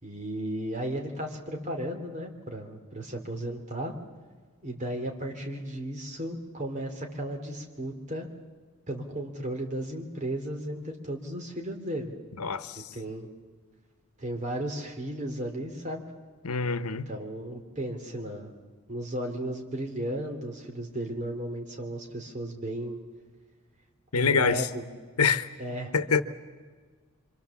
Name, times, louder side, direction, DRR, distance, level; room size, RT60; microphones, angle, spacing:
voice 1, 0.0-4.0 4.6-8.3 8.9-12.1 12.9-13.3 14.2-16.0 17.1-18.5 18.9-23.0 24.1-24.9 25.6-25.9, right 1 dB, 35° right, 2.9 m, -35 dB
voice 2, 12.4-12.8 16.4-17.1 24.1-24.6 25.2-25.5 25.9-26.2, left 5 dB, 90° left, 1.0 m, -25 dB
27.0 x 25.0 x 7.1 m
head